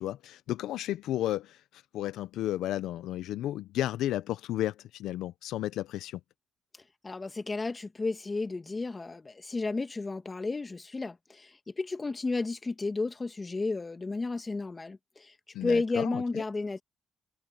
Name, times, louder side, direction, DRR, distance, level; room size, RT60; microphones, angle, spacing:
voice 1, 0.0-6.2 15.5-16.4, left 13 dB, 85° left, 0.6 m, -33 dB
voice 2, 7.0-15.3 15.6-16.8, left 3 dB, 25° left, 2.0 m, -32 dB
cardioid pair, 90°, 0 cm